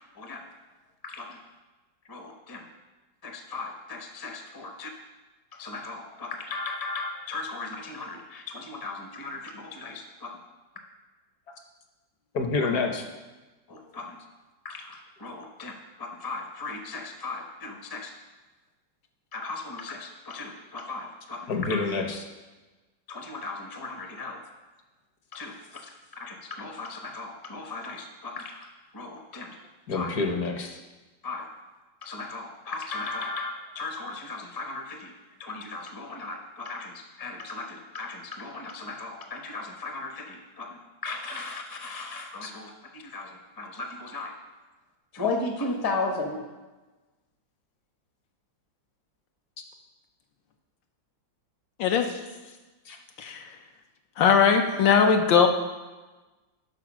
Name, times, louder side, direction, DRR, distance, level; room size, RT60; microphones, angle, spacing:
voice 1, 1.0-1.4 2.1-2.6 3.2-4.9 5.5-10.3 13.7-14.2 14.6-15.7 16.0-18.1 19.3-21.8 23.1-24.4 25.3-25.6 25.8-29.6 29.9-30.1 31.2-31.4 32.0-35.1 35.4-44.3 45.1-46.4, left 3 dB, 25° left, 3 dB, 0.5 m, -36 dB
voice 2, 12.3-13.0 21.5-22.2 29.9-30.8 42.4-42.5 52.8-53.0, left 3 dB, 55° left, 3 dB, 1.3 m, -28 dB
voice 3, 54.2-55.5, left 6 dB, 80° left, 5 dB, 1.5 m, -20 dB
11.0 x 4.5 x 6.1 m, 1.2 s
omnidirectional pair, 2.1 m